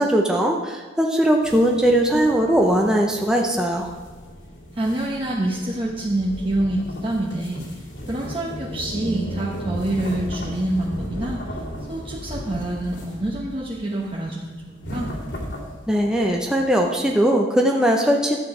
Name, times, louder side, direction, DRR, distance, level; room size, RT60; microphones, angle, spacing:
voice 1, 0.0-3.9 15.9-18.4, right 1 dB, 5° right, 0 dB, 0.7 m, -19 dB
sound 1, 1.4-17.1, equal, 65° left, 2.5 m, -35 dB
voice 2, 4.7-7.8 8.1-11.6 11.9-15.1, right 1 dB, 30° right, -4 dB, 1.1 m, -26 dB
12.0 x 8.4 x 4.9 m, 1.4 s
head